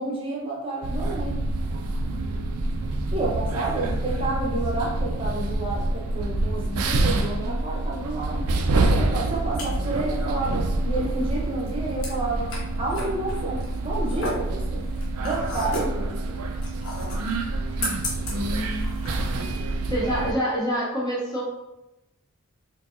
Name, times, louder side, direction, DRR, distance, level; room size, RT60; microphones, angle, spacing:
voice 1, 0.0-1.4 3.1-8.5 8.9-14.9 15.2-16.4, right 2 dB, 25° right, -4 dB, 0.7 m, -30 dB
sound 1, 0.8-20.3, right 2 dB, 90° right, 0.4 m, -27 dB
sound 2, 9.1-19.5, left 1 dB, 70° left, 1.0 m, -35 dB
voice 2, 18.3-19.0 19.9-21.4, equal, 20° left, -5 dB, 0.6 m, -27 dB
4.5 x 2.7 x 2.4 m, 0.92 s
head